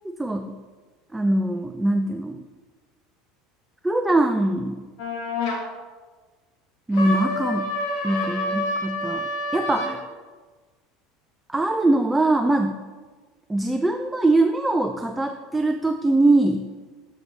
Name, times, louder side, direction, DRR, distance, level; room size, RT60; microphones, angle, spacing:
voice 1, 0.2-0.6 1.1-2.4 3.8-4.8 6.9-7.7 8.0-10.1 11.5-12.8 13.5-16.7, right 2 dB, 5° right, 6 dB, 0.3 m, -22 dB
sound 1, 5.0-5.6 6.9-10.0, left 2 dB, 65° left, 1.4 m, -28 dB
7.6 x 6.7 x 3.2 m, 1.4 s
cardioid pair, 150°, 0 cm